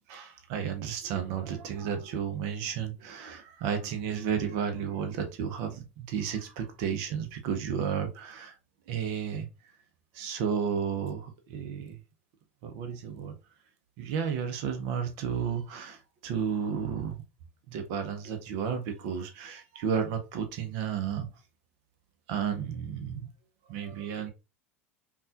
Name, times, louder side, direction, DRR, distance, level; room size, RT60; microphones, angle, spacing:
voice 1, 0.1-8.5 8.9-9.5 10.1-12.0 12.6-13.3 14.0-17.2 17.7-21.3 22.3-23.3 23.7-24.3, right 7 dB, 55° right, 0.7 m, -32 dB
5.5 x 2.4 x 2.4 m
figure-of-eight pair, 80°, 7 cm